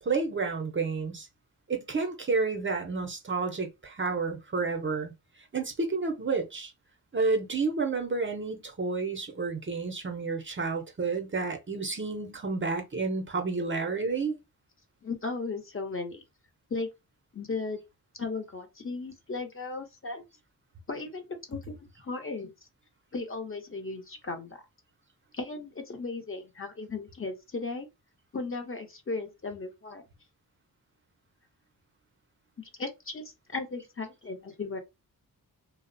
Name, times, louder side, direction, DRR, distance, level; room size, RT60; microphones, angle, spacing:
voice 1, 0.0-1.3 1.7-5.1 5.5-6.7 7.1-14.4, right 4 dB, 30° right, 0.6 m, -30 dB
voice 2, 15.0-16.2 16.7-16.9 17.3-17.8 18.1-20.2 20.9-22.5 23.1-24.6 25.3-27.9 28.3-30.0 32.6-34.8, left 3 dB, 35° left, 0.7 m, -36 dB
2.4 x 2.0 x 2.5 m
cardioid pair, 60°, 38 cm